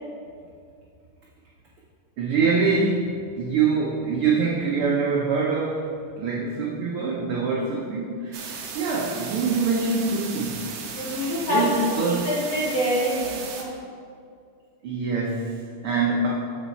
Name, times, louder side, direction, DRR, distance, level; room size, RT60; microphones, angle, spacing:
voice 1, 2.2-5.9 6.2-10.6 11.5-12.3 14.8-16.3, right 4 dB, 90° right, -3 dB, 1.2 m, -24 dB
sound 1, 8.3-13.6, right 5 dB, 75° right, 1.5 m, -36 dB
voice 2, 11.0-11.7 12.2-13.7, equal, 60° left, -6 dB, 2.0 m, -25 dB
7.4 x 6.9 x 4.3 m, 2.3 s
omnidirectional pair, 3.6 m